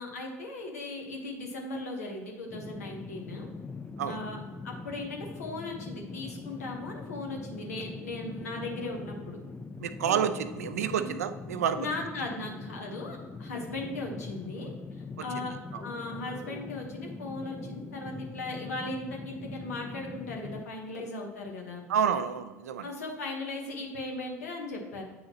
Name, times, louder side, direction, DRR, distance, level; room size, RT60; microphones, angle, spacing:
voice 1, 0.0-3.5 4.1-4.4 4.6-9.4 10.0-10.2 10.9-11.1 11.8-15.5 15.8-21.8 22.8-25.0, left 2 dB, 80° left, 1 dB, 1.2 m, -38 dB
sound 1, 2.5-20.7, left 3 dB, 20° left, 0.5 m, -42 dB
voice 2, 9.8-11.9 15.7-15.8 21.9-22.9, right 8 dB, 80° right, 11 dB, 0.4 m, -29 dB
8.4 x 4.1 x 2.9 m, 1.2 s
hypercardioid pair, 65°, 8 cm